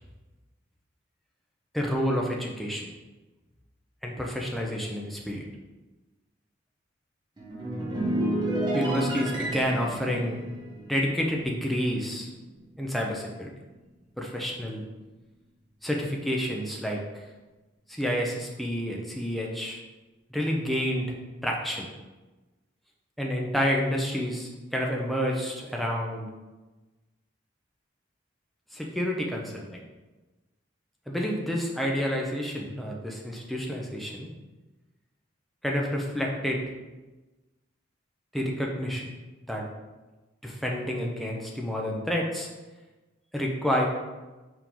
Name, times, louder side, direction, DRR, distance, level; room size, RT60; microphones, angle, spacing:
voice 1, 1.7-2.9 4.0-5.5 8.7-10.4 10.9-12.3 12.8-13.5 14.2-14.8 15.8-17.0 17.9-19.8 20.3-21.1 21.4-21.9 23.2-26.3 28.7-29.8 31.1-34.3 35.6-36.6 38.3-39.1 39.5-39.6 40.4-42.5 43.3-43.8, equal, ahead, -1 dB, 0.7 m, -29 dB
sound 1, 7.4-12.0 12.3-12.6, right 1 dB, 20° right, 1.2 m, -31 dB
5.2 x 4.8 x 3.8 m, 1.2 s
head